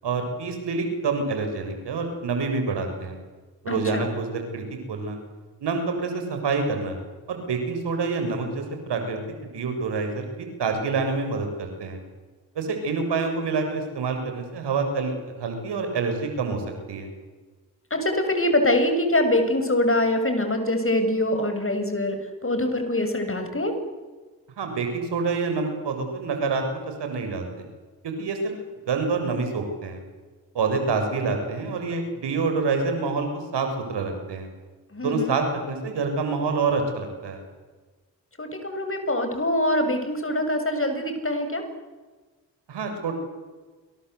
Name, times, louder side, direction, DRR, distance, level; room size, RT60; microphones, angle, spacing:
voice 1, 0.0-3.2 3.6-5.2 5.6-7.0 7.3-12.0 12.6-15.1 15.4-16.6 16.9-17.1 24.6-27.6 28.0-28.6 28.9-30.0 30.5-34.5 35.0-37.4 42.7-43.1, right 4 dB, 75° right, 5 dB, 7.1 m, -27 dB
voice 2, 3.7-4.1 17.9-23.7 34.9-35.3 38.4-41.6, left 1 dB, 30° left, 7 dB, 7.7 m, -24 dB
29.0 x 23.5 x 8.3 m, 1.3 s
supercardioid pair, 45°, 41 cm